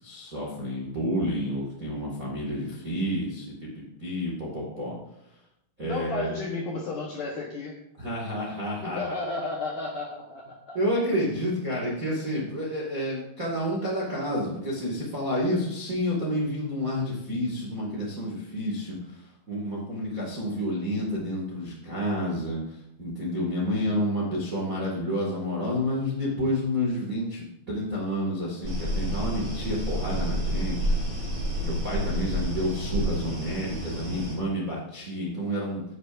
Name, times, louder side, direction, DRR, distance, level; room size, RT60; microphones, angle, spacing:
voice 1, 0.0-4.9 5.8-6.4 8.0-9.0 10.7-31.0 31.2-31.3 31.6-35.8, equal, 85° right, -4 dB, 0.7 m, -30 dB
voice 2, 5.8-7.8 8.8-10.8, left 3 dB, 75° left, -2 dB, 1.9 m, -33 dB
sound 1, 28.6-34.3, equal, 30° right, 3.9 m, -29 dB
15.5 x 9.4 x 2.6 m, 0.82 s
omnidirectional pair, 5.7 m